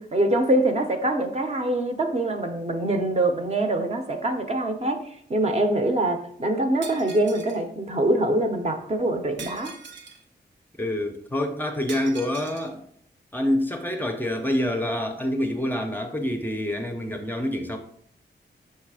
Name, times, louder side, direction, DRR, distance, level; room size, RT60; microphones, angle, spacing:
voice 1, 0.0-5.0 5.3-9.7, right 1 dB, 35° right, 5 dB, 0.7 m, -24 dB
Shatter, 6.8-7.6 9.4-10.2 11.9-12.7, right 5 dB, 85° right, 0.8 m, -41 dB
voice 2, 10.8-12.8 13.3-17.8, left 1 dB, 10° left, 3 dB, 0.5 m, -27 dB
6.5 x 3.1 x 4.8 m, 0.66 s
wide cardioid pair, 140°, 19 cm